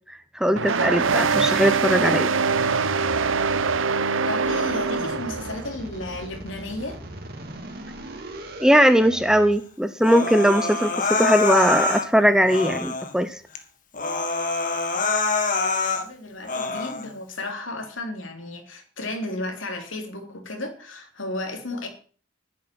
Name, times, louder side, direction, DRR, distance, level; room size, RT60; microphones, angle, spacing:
voice 1, 0.1-2.3 8.6-13.4, equal, 5° right, 0.7 m, -20 dB
sound 1, 0.6-5.7, right 5 dB, 80° right, 0.8 m, -23 dB
sound 2, 0.7-2.0 2.3-4.0 4.4-9.6, right 1 dB, 50° right, 2.7 m, -38 dB
voice 2, 4.3-7.0 15.9-21.9, left 2 dB, 75° left, 3.4 m, -33 dB
Human voice, 10.0-12.1 12.5-13.1 13.6-13.7 13.9-16.1 16.5-17.1, left 3 dB, 40° left, 1.8 m, -25 dB
11.5 x 11.0 x 6.0 m
head